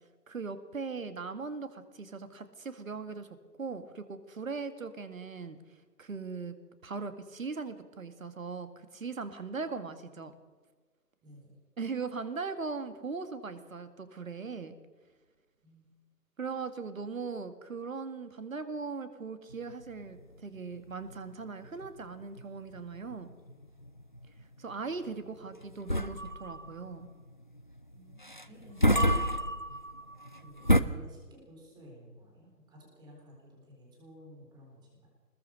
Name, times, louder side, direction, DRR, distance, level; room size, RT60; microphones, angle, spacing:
voice 1, 0.3-5.6 6.0-6.5 6.8-10.3 11.8-14.8 16.4-23.3 24.6-27.1, right 4 dB, 50° right, 11 dB, 2.2 m, -39 dB
voice 2, 11.2-11.6 15.6-16.0 23.5-23.7 27.9-29.3 30.4-35.1, equal, 10° right, -1 dB, 3.9 m, -54 dB
sound 1, 19.5-30.8, equal, 30° left, 0.5 m, -31 dB
21.5 x 20.5 x 6.6 m, 1.4 s
figure-of-eight pair, 150°, 49 cm